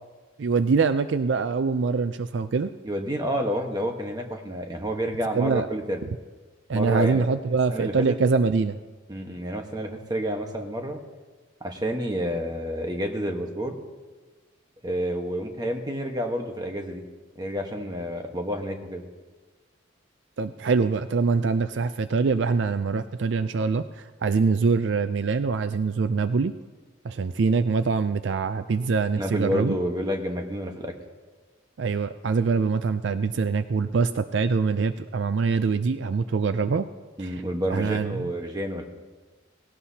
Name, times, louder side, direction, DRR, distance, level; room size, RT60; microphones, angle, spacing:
voice 1, 0.4-2.7 5.3-5.7 6.7-8.8 20.4-23.9 24.2-26.5 27.0-29.8 31.8-36.9 37.2-37.3 37.7-38.3, right 4 dB, 60° right, 11 dB, 0.4 m, -24 dB
voice 2, 2.8-6.0 6.7-7.2 7.7-8.2 9.1-11.0 11.6-13.8 14.8-17.0 17.4-19.1 29.1-30.9 37.2-38.9, equal, 20° right, 3 dB, 1.2 m, -29 dB
18.5 x 17.0 x 2.8 m, 1.3 s
head